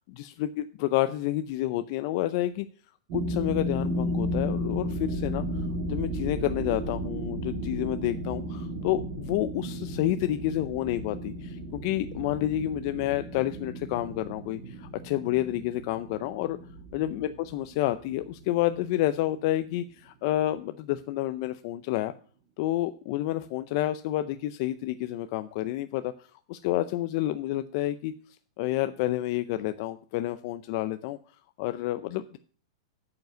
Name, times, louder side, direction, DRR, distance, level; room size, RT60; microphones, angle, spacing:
voice 1, 0.2-2.7 3.1-16.6 16.9-22.1 22.6-28.1 28.6-31.2 31.6-32.4, left 14 dB, 50° left, 11 dB, 0.6 m, -29 dB
sound 1, 3.1-19.0, equal, 50° right, 2.9 m, -34 dB
9.2 x 5.4 x 7.9 m, 0.43 s
hypercardioid pair, 140°, 3 cm